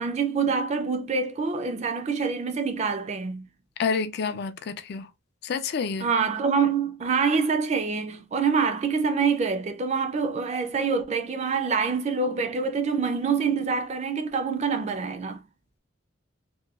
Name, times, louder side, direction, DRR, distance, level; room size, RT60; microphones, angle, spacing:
voice 1, 0.0-3.5 6.0-15.4, right 5 dB, 35° right, 0.4 m, -26 dB
voice 2, 3.8-5.1 5.4-6.1, left 5 dB, 55° left, 0.3 m, -28 dB
2.9 x 2.2 x 2.3 m
head